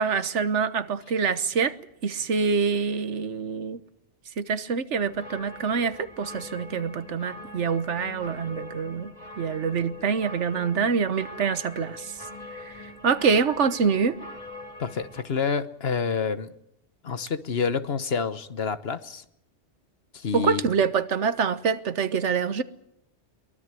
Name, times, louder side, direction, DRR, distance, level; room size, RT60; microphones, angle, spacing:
voice 1, 0.0-1.7 2.0-3.8 4.4-9.1 9.4-12.1 12.6-12.7 13.0-14.2 20.3-22.6, right 6 dB, 85° right, 1.4 m, -25 dB
sound 1, 4.9-15.2, left 1 dB, 35° left, 3.4 m, -42 dB
voice 2, 14.8-16.5 17.0-19.2 20.1-20.6, left 5 dB, 60° left, 1.3 m, -28 dB
23.5 x 19.5 x 7.7 m
omnidirectional pair, 1.2 m